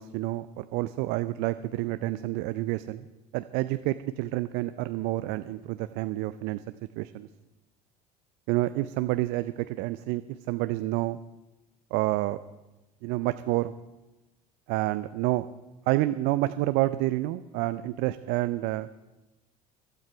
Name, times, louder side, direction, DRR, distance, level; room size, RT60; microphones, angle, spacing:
voice 1, 0.0-3.1 3.3-6.6 7.0-7.3 8.5-10.2 10.5-11.2 11.9-12.4 13.0-13.7 14.7-15.5 15.9-18.9, right 17 dB, 60° right, 12 dB, 0.5 m, -28 dB
15.0 x 12.5 x 4.6 m, 1.1 s
hypercardioid pair, 65°, 19 cm